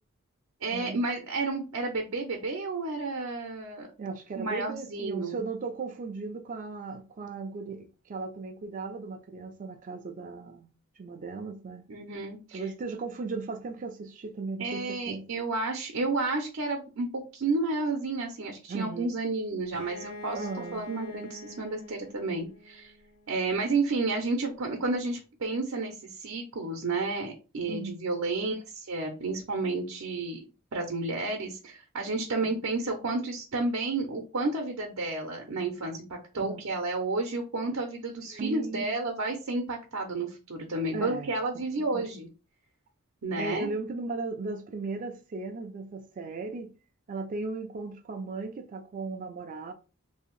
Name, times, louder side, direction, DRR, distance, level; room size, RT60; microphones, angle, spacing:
voice 1, 0.6-3.9 4.4-5.4 11.9-12.6 14.6-17.1 17.3-20.5 20.7-22.9 23.3-30.4 30.7-42.3 43.2-43.7, right 3 dB, 80° right, 0.6 m, -31 dB
voice 2, 4.0-11.8 12.5-15.2 18.7-19.1 20.3-20.9 27.7-27.9 32.4-32.6 36.4-36.6 38.3-39.0 40.9-41.6 41.9-42.1 43.4-46.7 47.1-49.7, right 3 dB, 40° right, 0.3 m, -37 dB
Bowed string instrument, 19.7-23.4, left 1 dB, 60° left, 1.5 m, -45 dB
2.8 x 2.7 x 3.0 m
head